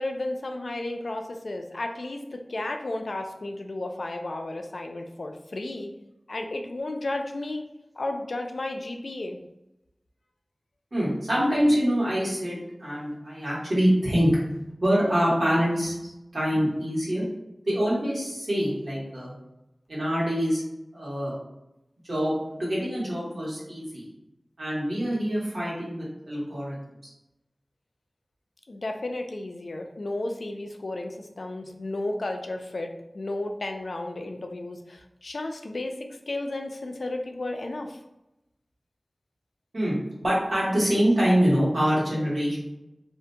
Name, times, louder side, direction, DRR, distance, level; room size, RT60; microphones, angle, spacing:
voice 1, 0.0-5.9 6.3-7.6 8.0-9.4 28.7-36.0 36.3-38.0, left 2 dB, 80° left, 4 dB, 0.3 m, -33 dB
voice 2, 10.9-14.3 14.8-17.2 17.7-19.3 19.9-20.6 20.9-21.3 22.1-24.0 24.6-26.8 27.0-27.1 39.7-40.0 40.2-42.6, equal, 80° right, -7 dB, 1.2 m, -25 dB
2.7 x 2.4 x 2.2 m, 0.92 s
wide cardioid pair, 65°, 0 cm